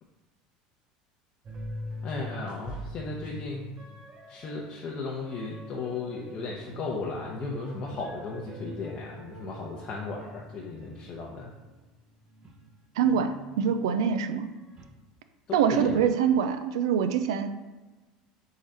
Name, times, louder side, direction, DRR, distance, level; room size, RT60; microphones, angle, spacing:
sound 1, 1.4-11.9 12.3-14.2 14.6-14.9, left 1 dB, 35° right, 0.7 m, -44 dB
voice 1, 2.0-3.7 4.3-11.5 15.5-16.0, left 3 dB, 45° left, -2 dB, 0.7 m, -35 dB
voice 2, 13.0-14.5 15.5-17.5, right 7 dB, 85° right, 9 dB, 0.3 m, -25 dB
3.7 x 3.1 x 4.1 m, 1.2 s
supercardioid pair, 100°, 3 cm